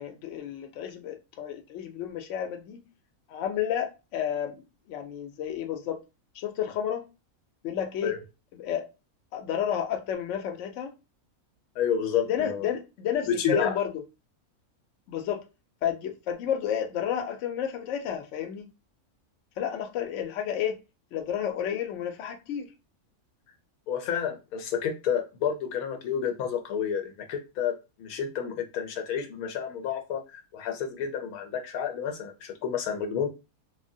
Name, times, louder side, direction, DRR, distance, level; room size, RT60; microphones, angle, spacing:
voice 1, 0.0-2.8 3.3-6.0 6.3-7.1 7.6-8.1 8.6-8.8 9.3-10.9 12.3-14.0 15.1-15.4 15.8-18.7 19.6-20.8 21.1-22.7, left 9 dB, 65° left, 0.8 m, -31 dB
voice 2, 11.8-12.7 13.3-13.8 23.9-33.3, left 7 dB, 90° left, 1.1 m, -30 dB
3.2 x 2.1 x 2.6 m
omnidirectional pair, 1.5 m